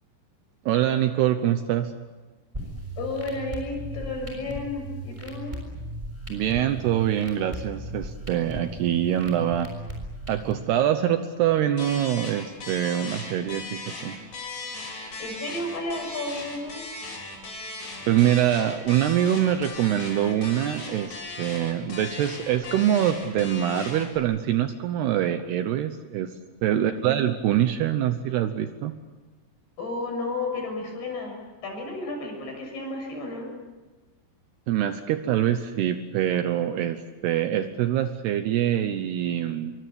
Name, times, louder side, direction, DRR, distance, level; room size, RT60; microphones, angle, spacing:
voice 1, 0.7-1.9 6.3-9.7 10.3-14.2 18.1-28.9 34.7-39.7, right 11 dB, 75° right, 9 dB, 2.7 m, -24 dB
sound 1, 2.5-10.5, right 1 dB, 10° right, 6.3 m, -37 dB
voice 2, 3.0-5.6 15.2-16.9 26.7-27.1 29.8-31.3 31.6-33.5, left 2 dB, 55° left, 1 dB, 8.6 m, -32 dB
sound 2, 11.8-24.2, left 3 dB, 40° left, 6.2 m, -38 dB
26.5 x 24.0 x 8.7 m, 1.2 s
omnidirectional pair, 5.4 m